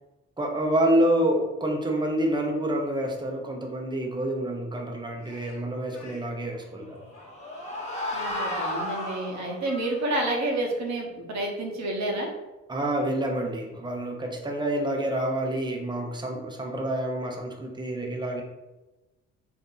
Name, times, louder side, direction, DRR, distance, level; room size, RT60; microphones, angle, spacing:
voice 1, 0.4-7.0 12.7-18.4, right 1 dB, 15° right, 1 dB, 0.7 m, -27 dB
Speech, 5.2-6.2 7.1-10.1, left 5 dB, 55° left, 0.8 m, -47 dB
sound 1, 6.8-9.8, left 1 dB, 20° left, 1.0 m, -33 dB
voice 2, 8.1-12.3, right 1 dB, 65° right, 0 dB, 0.9 m, -29 dB
2.7 x 2.6 x 3.8 m, 1.1 s
cardioid pair, 90°, 30 cm